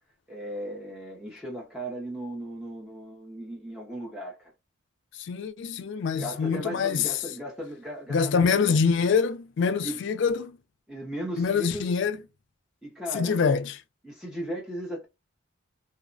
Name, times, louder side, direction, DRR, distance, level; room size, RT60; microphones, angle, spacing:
voice 1, 0.3-4.5 6.2-8.9 9.8-10.0 10.9-11.8 12.8-13.4 14.0-15.1, equal, 5° right, 0.4 m, -36 dB
voice 2, 5.1-7.1 8.1-10.6 11.4-12.2 13.1-13.8, left 5 dB, 55° left, 0.3 m, -25 dB
2.7 x 2.0 x 2.5 m
head